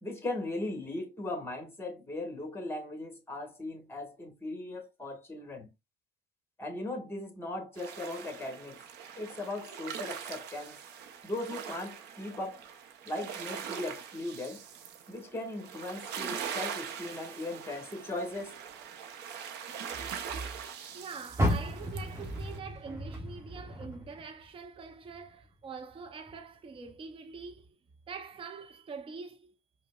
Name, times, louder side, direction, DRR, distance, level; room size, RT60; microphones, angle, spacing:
voice 1, 0.0-5.7 6.6-8.8 9.2-10.8 11.2-12.6 13.0-14.6 15.1-18.5, left 2 dB, 15° left, 1.3 m, -38 dB
sound 1, 7.8-22.6, right 8 dB, 85° right, 0.7 m, -42 dB
voice 2, 19.9-20.4 20.9-27.8 28.1-29.6, right 5 dB, 30° right, 0.6 m, -44 dB
Car, 21.3-24.6 25.0-26.4 26.8-26.9 27.5-27.6, equal, 15° right, 1.4 m, -34 dB
4.9 x 2.1 x 2.2 m
cardioid pair, 110°, 17 cm